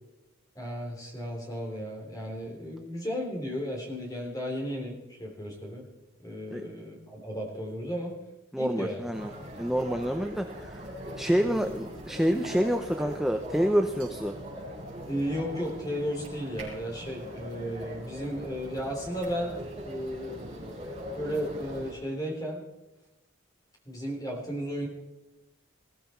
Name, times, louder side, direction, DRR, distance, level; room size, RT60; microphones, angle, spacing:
voice 1, 0.6-5.9 6.2-8.2 8.6-9.0 15.1-22.6 23.9-24.9, equal, 15° left, 0 dB, 3.6 m, -34 dB
voice 2, 8.5-9.3 9.6-10.9 11.2-14.3, equal, ahead, 5 dB, 0.6 m, -27 dB
sound 1, 9.1-21.9, equal, 25° right, 6.0 m, -41 dB
20.0 x 15.0 x 4.5 m, 1.0 s
head